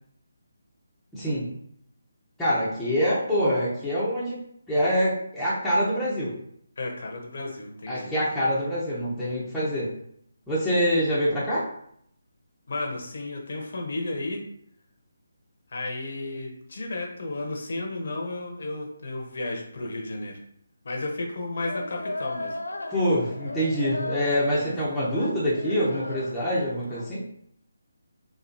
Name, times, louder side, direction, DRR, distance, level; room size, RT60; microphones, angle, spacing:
voice 1, 1.1-1.6 2.4-4.4 4.7-6.3 7.9-9.9 10.5-11.6 22.9-27.2, equal, 5° left, -12 dB, 0.8 m, -25 dB
voice 2, 6.8-8.1 12.7-14.4 15.7-20.4 20.8-22.6, left 2 dB, 55° left, 0 dB, 0.9 m, -33 dB
sound 1, 21.7-27.1, left 2 dB, 80° left, 0.4 m, -36 dB
4.2 x 2.7 x 2.7 m, 0.69 s
figure-of-eight pair, 150°, 0 cm